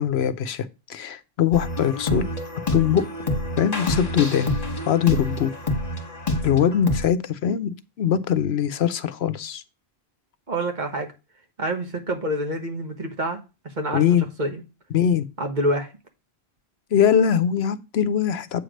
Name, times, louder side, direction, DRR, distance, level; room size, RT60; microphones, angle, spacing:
voice 1, 0.0-2.3 2.7-3.0 3.6-4.5 4.9-5.5 6.4-9.6 13.9-14.3 14.9-15.3 16.9-18.6, left 9 dB, 85° left, 1.0 m, -22 dB
sound 1, 1.5-7.1, left 1 dB, 40° left, 1.6 m, -27 dB
voice 2, 10.5-11.1 11.6-13.4 13.8-14.0 14.4-14.6 15.4-15.9, right 1 dB, 45° right, 1.5 m, -26 dB
8.4 x 3.3 x 6.3 m
omnidirectional pair, 1.0 m